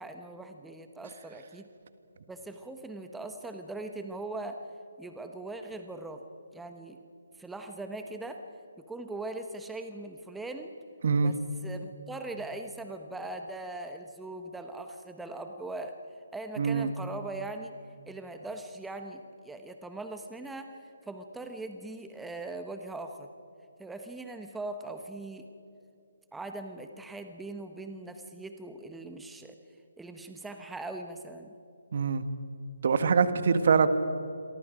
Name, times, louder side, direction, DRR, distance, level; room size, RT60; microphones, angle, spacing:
voice 1, 0.0-1.7 2.3-4.6 5.0-6.2 6.5-7.0 7.4-8.4 8.8-10.7 11.2-15.9 16.3-17.7 18.1-23.3 23.8-25.5 26.3-29.6 30.0-31.5, right 2 dB, 5° right, 6 dB, 1.1 m, -40 dB
voice 2, 16.6-16.9 31.9-32.2 32.8-33.9, right 5 dB, 55° right, 11 dB, 1.6 m, -24 dB
28.5 x 23.5 x 5.2 m, 2.7 s
figure-of-eight pair, 150°, 0 cm